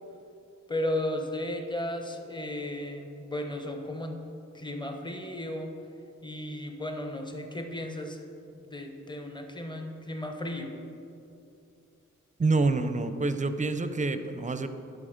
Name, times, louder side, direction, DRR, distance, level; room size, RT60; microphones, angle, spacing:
voice 1, 0.7-4.2 4.5-5.7 6.2-8.2 8.5-10.7, left 1 dB, 15° left, 4 dB, 0.9 m, -34 dB
voice 2, 12.4-14.7, right 3 dB, 25° right, 10 dB, 0.5 m, -27 dB
10.5 x 4.1 x 5.0 m, 2.6 s
cardioid pair, 50°, 31 cm